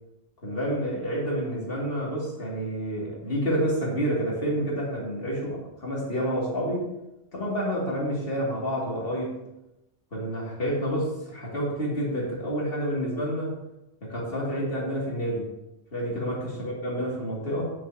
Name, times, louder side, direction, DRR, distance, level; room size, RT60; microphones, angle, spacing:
voice 1, 0.4-6.9 7.3-9.4 10.1-13.5 14.0-15.5 15.9-17.7, equal, 50° left, -4 dB, 2.8 m, -29 dB
9.4 x 7.9 x 2.9 m, 0.93 s
omnidirectional pair, 1.3 m